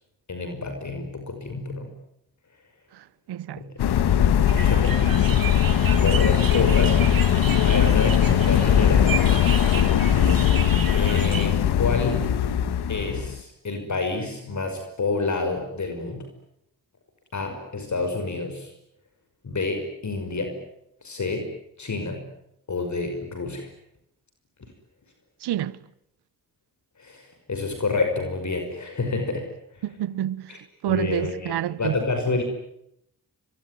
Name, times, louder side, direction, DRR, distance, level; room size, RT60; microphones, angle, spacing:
voice 1, 0.3-1.9 3.5-3.7 4.5-7.0 7.4-9.2 10.9-12.3 12.9-16.3 17.3-18.7 19.4-20.6 21.0-21.5 21.8-22.3 22.7-23.7 27.0-29.5 30.5-30.6 30.9-32.4, left 3 dB, 45° left, 5.7 m, -29 dB
voice 2, 3.3-3.6 7.9-8.0 25.4-25.8 29.8-30.6 30.8-32.0, right 11 dB, 85° right, 1.0 m, -28 dB
sound 1, 3.8-13.4, left 9 dB, 80° left, 1.8 m, -20 dB
sound 2, 4.5-11.5, right 7 dB, 60° right, 2.9 m, -33 dB
25.0 x 23.0 x 9.8 m
cardioid pair, 60°, 38 cm